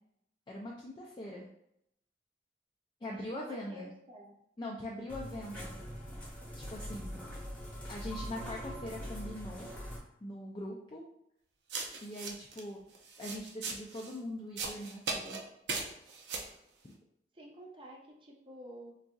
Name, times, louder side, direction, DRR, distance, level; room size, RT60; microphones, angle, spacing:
voice 1, 0.5-1.5 3.0-3.9 4.6-5.8 6.5-7.2 7.9-9.7 10.2-11.0 12.0-12.8 13.2-15.4 16.8-16.9, left 1 dB, 25° left, -3 dB, 0.4 m, -42 dB
voice 2, 3.1-4.3 17.3-18.9, right 1 dB, 30° right, -1 dB, 0.6 m, -50 dB
sound 1, 5.1-10.0, equal, 10° left, 0.9 m, -42 dB
sound 2, 11.7-12.6 12.9-14.1 14.6-15.4 15.7-16.5, right 4 dB, 80° right, 0.6 m, -38 dB
3.9 x 2.6 x 2.3 m, 0.77 s
head